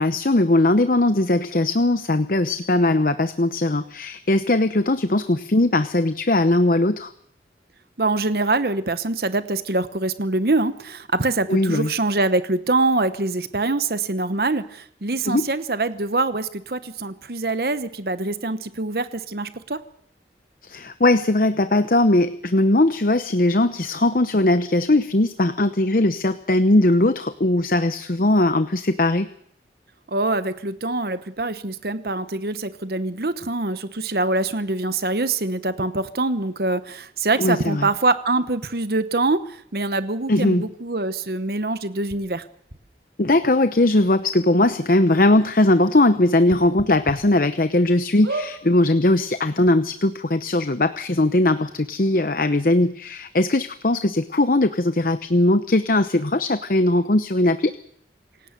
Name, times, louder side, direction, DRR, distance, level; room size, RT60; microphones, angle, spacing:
voice 1, 0.0-7.1 11.5-11.9 15.2-15.5 20.6-29.3 37.4-37.9 40.3-40.7 43.2-57.7, left 2 dB, 50° left, 11 dB, 0.9 m, -19 dB
voice 2, 8.0-19.8 30.1-42.4, right 2 dB, 55° right, 12 dB, 1.0 m, -24 dB
sound 1, 42.1-42.2 42.7-42.8 43.8-43.9 44.2-44.3 44.7-44.8 46.5-47.2 47.7-47.8 48.2-48.5 49.3-49.4 49.6-49.7, right 2 dB, 85° right, 5.4 m, -31 dB
27.5 x 17.0 x 6.7 m, 0.70 s
head